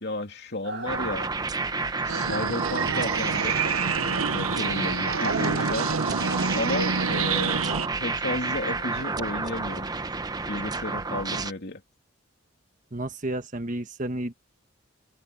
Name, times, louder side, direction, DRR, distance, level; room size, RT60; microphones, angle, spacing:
voice 1, 0.0-1.3 2.0-3.6 4.3-5.9 6.5-7.6 8.0-9.9 10.4-11.8, left 2 dB, 55° left, 3.0 m, -33 dB
sound 1, 0.6-9.2, right 4 dB, 55° right, 1.4 m, -39 dB
sound 2, 0.9-11.5, right 3 dB, 20° right, 0.8 m, -30 dB
sound 3, 2.1-7.9, right 5 dB, 90° right, 1.0 m, -28 dB
voice 2, 12.9-14.3, right 1 dB, 40° right, 1.4 m, -31 dB
head